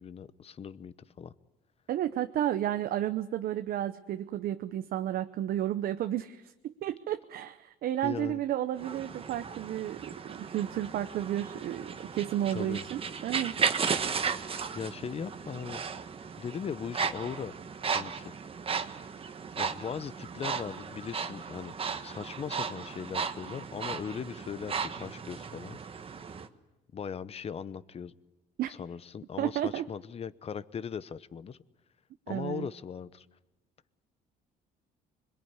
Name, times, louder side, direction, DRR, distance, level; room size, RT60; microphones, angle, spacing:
voice 1, 0.0-1.3 8.0-8.4 12.5-12.8 14.7-15.8 16.4-17.6 17.9-18.3 19.6-21.7 22.0-25.8 26.9-28.1 28.7-31.6 32.3-33.3, left 7 dB, 35° left, 16 dB, 0.9 m, -39 dB
voice 2, 1.9-13.6 28.6-28.7 29.4-29.9 32.3-32.7, right 12 dB, 65° right, 9 dB, 0.9 m, -32 dB
sound 1, 8.8-26.5, right 6 dB, 35° right, 1.4 m, -35 dB
26.0 x 22.0 x 9.6 m, 1.0 s
cardioid pair, 110°, 17 cm